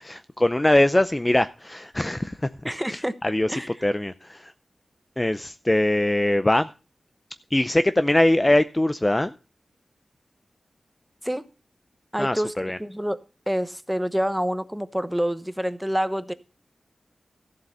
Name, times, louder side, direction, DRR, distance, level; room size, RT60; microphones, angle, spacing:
voice 1, 0.0-4.5 5.2-6.7 7.5-9.3 12.2-12.8, left 1 dB, 20° left, 0.5 m, -22 dB
voice 2, 2.6-3.1 3.5-3.7 11.2-11.4 12.1-12.5 12.8-13.2 13.5-16.3, equal, 5° right, 1.0 m, -27 dB
14.0 x 7.6 x 5.4 m
wide cardioid pair, 90°, 0 cm